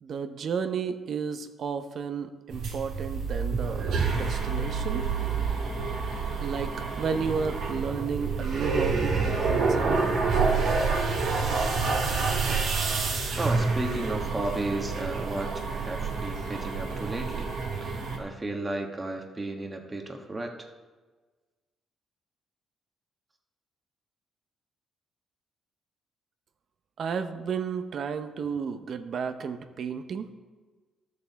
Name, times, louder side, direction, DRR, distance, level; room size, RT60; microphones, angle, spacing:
voice 1, 0.0-5.0 6.4-9.2 9.5-10.2 27.0-30.3, right 6 dB, 60° right, 9 dB, 0.7 m, -32 dB
sound 1, 2.5-18.2, right 4 dB, 75° right, 2.3 m, -28 dB
voice 2, 13.4-17.5 17.8-20.7, right 2 dB, 20° right, 3 dB, 1.3 m, -34 dB
13.5 x 6.6 x 4.1 m, 1.3 s
cardioid pair, 90°, 0 cm